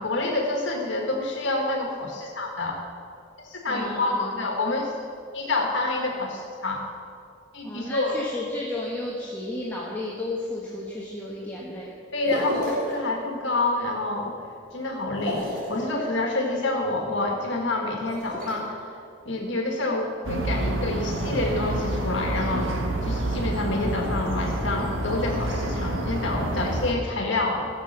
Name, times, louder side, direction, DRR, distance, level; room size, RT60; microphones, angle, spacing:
voice 1, 0.0-2.8 3.5-4.9 5.3-6.8 7.5-8.2 12.1-14.3 14.7-18.8 19.2-22.7 23.0-27.6, left 2 dB, 65° left, 1 dB, 1.6 m, -27 dB
voice 2, 3.7-4.3 7.6-11.9, left 1 dB, 10° left, -5 dB, 1.2 m, -33 dB
sound 1, 12.2-12.9 15.1-15.8 17.9-18.5, left 1 dB, 45° right, 3.4 m, -32 dB
sound 2, 20.2-26.9, right 1 dB, 75° right, 1.4 m, -28 dB
16.0 x 7.0 x 6.7 m, 2.5 s
head